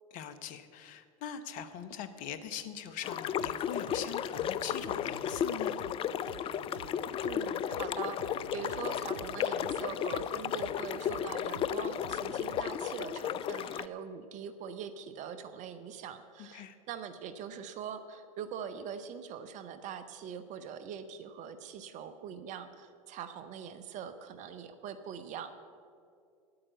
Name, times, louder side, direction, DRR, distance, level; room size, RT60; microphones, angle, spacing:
voice 1, 0.1-5.8 16.5-16.8, left 9 dB, 50° left, 11 dB, 1.0 m, -42 dB
sound 1, 3.0-13.9, left 9 dB, 30° left, 0.4 m, -34 dB
sound 2, 3.2-12.7, right 10 dB, 70° right, 0.5 m, -51 dB
voice 2, 7.2-25.6, right 7 dB, 45° right, 11 dB, 0.8 m, -43 dB
10.0 x 8.8 x 8.0 m, 2.4 s
hypercardioid pair, 85°, 18 cm